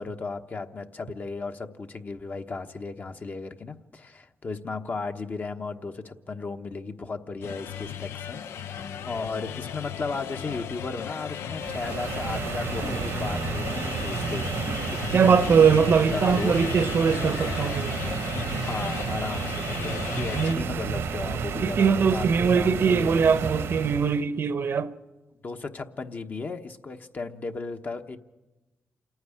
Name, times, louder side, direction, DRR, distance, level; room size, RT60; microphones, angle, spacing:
voice 1, 0.0-14.8 15.1-16.7 18.6-23.3 25.4-28.2, left 4 dB, 45° left, 1.2 m, -35 dB
sound 1, 7.4-20.6, left 8 dB, 90° left, 0.6 m, -35 dB
sound 2, 11.6-24.2, right 6 dB, 90° right, 1.2 m, -31 dB
sound 3, 12.8-20.2, left 4 dB, 75° left, 1.7 m, -46 dB
voice 2, 15.1-18.0 20.4-20.6 21.6-24.9, right 6 dB, 65° right, 0.8 m, -21 dB
28.0 x 9.5 x 9.9 m
cardioid pair, 80°, 4 cm